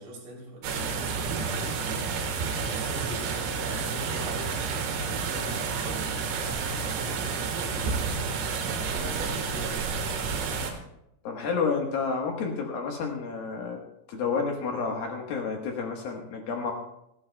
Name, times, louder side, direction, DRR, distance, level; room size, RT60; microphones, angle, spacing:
voice 1, 0.0-8.0 8.7-10.1, right 1 dB, 85° right, -2 dB, 5.8 m, -43 dB
sound 1, 0.6-10.7, right 5 dB, 70° right, 3.2 m, -30 dB
voice 2, 11.2-13.8 14.1-16.7, left 5 dB, 65° left, 1 dB, 2.5 m, -30 dB
29.5 x 10.0 x 2.2 m, 0.83 s
omnidirectional pair, 5.6 m